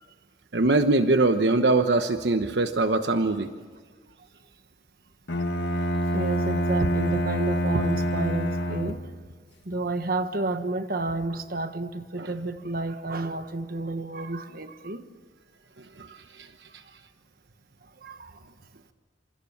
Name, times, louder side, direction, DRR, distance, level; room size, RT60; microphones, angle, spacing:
voice 1, 0.5-3.5 12.2-12.3, right 2 dB, 75° right, 8 dB, 1.1 m, -22 dB
Bowed string instrument, 5.3-9.2, equal, 75° left, 2.0 m, -26 dB
voice 2, 6.1-9.1 9.6-15.0 16.0-16.2 18.0-18.4, right 2 dB, 55° right, 9 dB, 1.4 m, -30 dB
28.5 x 27.0 x 7.4 m, 1.5 s
head